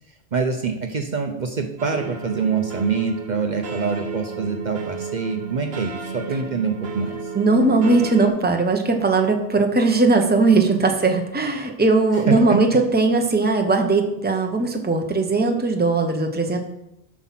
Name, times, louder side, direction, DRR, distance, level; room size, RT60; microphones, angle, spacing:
voice 1, 0.3-7.2 12.1-12.6, right 5 dB, 50° right, 5 dB, 0.8 m, -25 dB
sound 1, 1.8-8.3, right 4 dB, 75° right, 1.3 m, -32 dB
voice 2, 7.3-16.6, right 3 dB, 10° right, 4 dB, 0.8 m, -19 dB
7.7 x 6.1 x 5.8 m, 0.84 s
omnidirectional pair, 1.0 m